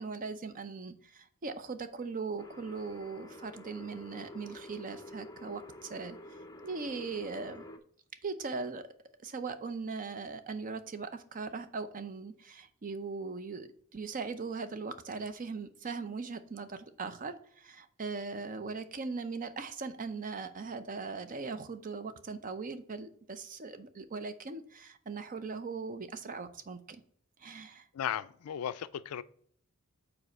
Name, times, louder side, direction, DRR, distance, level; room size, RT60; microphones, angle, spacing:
voice 1, 0.0-6.2 6.6-7.7 8.2-8.9 9.2-27.0 27.4-27.9, right 4 dB, 35° right, 0.6 m, -39 dB
sound 1, 2.4-7.8, left 1 dB, 15° left, 0.6 m, -49 dB
voice 2, 27.9-29.2, left 9 dB, 75° left, 0.4 m, -36 dB
5.3 x 4.3 x 5.8 m
head